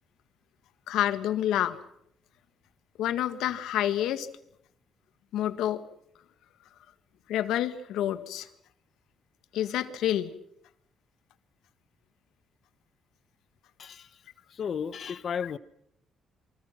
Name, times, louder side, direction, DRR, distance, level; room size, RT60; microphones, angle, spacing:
voice 1, 0.9-1.8 3.0-4.3 5.3-5.9 7.3-8.5 9.5-10.3, left 11 dB, 85° left, 1.7 m, -28 dB
voice 2, 14.5-15.6, left 7 dB, 55° left, 1.1 m, -33 dB
29.0 x 24.5 x 5.9 m
cardioid pair, 90°, 0 cm